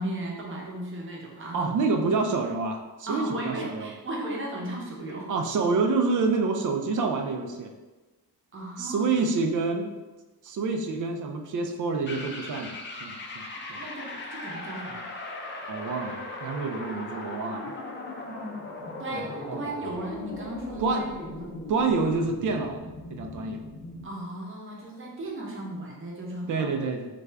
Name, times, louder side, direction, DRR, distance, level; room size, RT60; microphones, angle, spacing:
voice 1, 0.0-1.7 3.1-5.3 8.5-9.1 13.7-15.1 19.0-21.6 24.0-26.7, right 1 dB, 35° right, -2 dB, 0.8 m, -36 dB
voice 2, 1.5-3.9 5.3-7.7 8.8-9.9 10.4-13.8 15.7-17.7 19.1-19.6 20.8-21.0 21.7-22.8 23.1-23.6 26.5-27.1, right 4 dB, 55° right, 4 dB, 0.4 m, -28 dB
sound 1, 12.1-24.1, left 2 dB, 30° left, 0.5 m, -38 dB
3.3 x 2.5 x 3.3 m, 1.2 s
wide cardioid pair, 145°, 38 cm